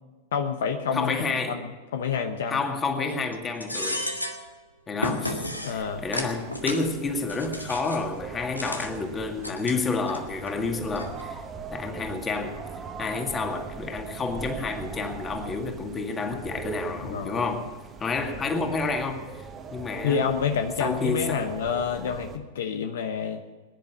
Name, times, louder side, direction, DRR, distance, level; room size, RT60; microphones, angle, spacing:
voice 1, 0.3-2.6 5.6-6.0 17.0-17.6 20.0-23.4, left 7 dB, 60° left, 7 dB, 0.9 m, -28 dB
voice 2, 0.9-1.6 2.5-4.1 4.9-11.4 11.7-12.6 13.0-17.7 18.0-19.2 19.7-20.3 20.8-21.5, left 4 dB, 20° left, 5 dB, 2.2 m, -29 dB
sound 1, 3.1-3.3 3.6-4.4 5.0-5.7 6.1-6.8 7.3-8.0 8.5-8.9 9.4-10.2 10.5-10.6 11.0-11.2, left 1 dB, 90° left, 1.7 m, -32 dB
sound 2, 5.7-22.4, right 5 dB, 25° right, 1.5 m, -40 dB
21.0 x 11.0 x 6.1 m, 1.4 s
figure-of-eight pair, 95°, 0 cm